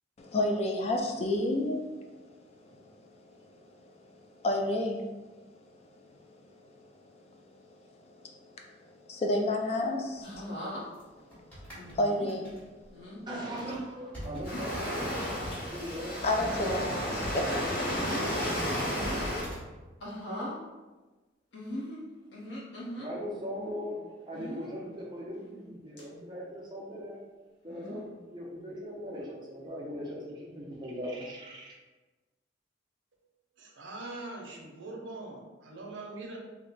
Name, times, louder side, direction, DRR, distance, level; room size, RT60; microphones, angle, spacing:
voice 1, 0.2-13.2 16.2-17.7, left 1 dB, 35° left, 2 dB, 0.3 m, -33 dB
sound 1, 10.1-15.8 16.1-16.3 16.7-19.6, equal, 10° left, 1.0 m, -44 dB
sound 2, 10.2-10.8 11.8-12.3 12.9-13.2 14.2-14.8 15.3-15.6 16.3-17.2 17.6-18.5 18.9-19.4 20.0-20.6 21.5-23.1 24.3-24.7 25.4-25.7 26.0-26.1 27.7-28.1 29.1-29.4, left 1 dB, 75° left, 0.9 m, -40 dB
voice 2, 13.0-15.3 15.7-16.2 17.4-18.0 23.0-27.2 27.6-31.7, equal, 25° right, -4 dB, 0.6 m, -39 dB
Waves surf, 14.4-19.4, equal, 50° left, 1.0 m, -33 dB
voice 3, 33.6-36.4, right 2 dB, 80° right, 0 dB, 0.6 m, -42 dB
3.0 x 2.1 x 3.8 m, 1.2 s
head